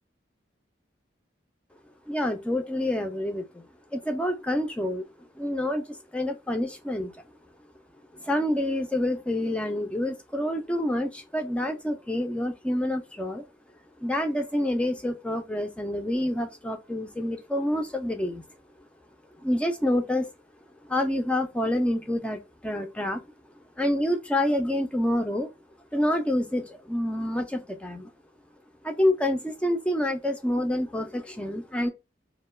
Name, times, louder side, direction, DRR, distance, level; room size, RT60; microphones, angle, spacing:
voice 1, 2.1-5.1 5.4-7.2 8.1-13.4 14.0-18.5 19.4-20.3 20.9-23.2 23.8-25.5 25.9-28.1 28.8-31.9, left 1 dB, 5° left, 0.3 m, -27 dB
2.2 x 2.1 x 3.1 m
head